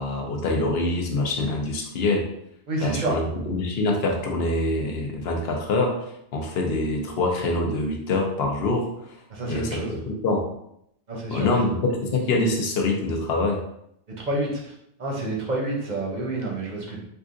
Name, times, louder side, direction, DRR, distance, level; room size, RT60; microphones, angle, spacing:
voice 1, 0.0-2.3 2.8-9.2 9.5-10.5 11.3-13.6, left 2 dB, 65° left, 1 dB, 0.8 m, -25 dB
voice 2, 2.7-3.2 9.3-9.9 11.1-11.5 14.2-14.7 15.0-17.0, right 2 dB, 45° right, -2 dB, 0.7 m, -28 dB
3.6 x 2.4 x 2.5 m, 0.75 s
omnidirectional pair, 1.2 m